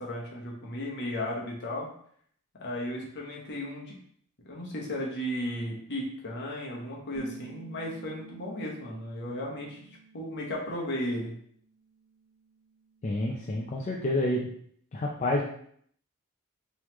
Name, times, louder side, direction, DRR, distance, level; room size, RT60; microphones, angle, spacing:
voice 1, 0.0-1.9 2.6-4.0 4.4-9.9 10.1-11.4, left 1 dB, 55° left, -2 dB, 1.0 m, -35 dB
Bass guitar, 7.1-11.5 11.8-13.4, right 5 dB, 70° right, 0.5 m, -52 dB
voice 2, 13.0-14.5 14.9-15.4, left 1 dB, 35° left, -2 dB, 0.5 m, -28 dB
3.8 x 3.1 x 3.0 m, 0.62 s
head